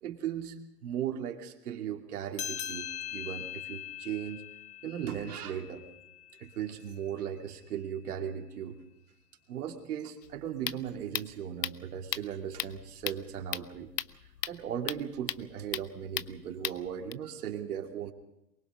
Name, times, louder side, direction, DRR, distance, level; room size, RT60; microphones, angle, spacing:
voice 1, 0.0-4.5 4.8-5.9 6.4-8.8 9.5-13.9 14.4-18.1, right 9 dB, 65° right, 3 dB, 2.8 m, -37 dB
sound 1, 2.3-7.2, left 10 dB, 60° left, 1.5 m, -42 dB
sound 2, 10.2-17.1, left 11 dB, 80° left, 0.8 m, -38 dB
23.5 x 21.0 x 5.3 m, 0.86 s
hypercardioid pair, 120°, 49 cm